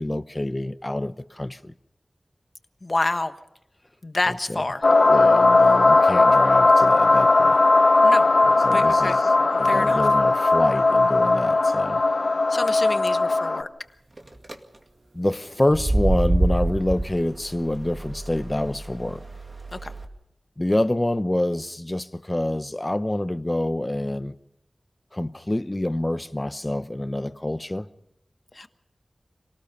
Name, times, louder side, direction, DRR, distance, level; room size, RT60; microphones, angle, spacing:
voice 1, 0.0-1.7 5.1-7.6 8.6-9.3 9.6-12.0 15.1-19.2 20.6-24.4 25.1-27.9, left 1 dB, 25° left, 0.9 m, -27 dB
voice 2, 2.8-3.3 4.0-4.9 8.0-8.3 8.7-10.0 12.5-13.7 19.7-19.9 28.5-28.7, left 2 dB, 45° left, 1.3 m, -28 dB
sound 1, 4.8-13.6, left 3 dB, 75° left, 1.3 m, -18 dB
sound 2, 14.2-14.5 15.6-20.0, right 2 dB, 45° right, 2.2 m, -26 dB
27.0 x 18.5 x 5.4 m
wide cardioid pair, 60°, 0 cm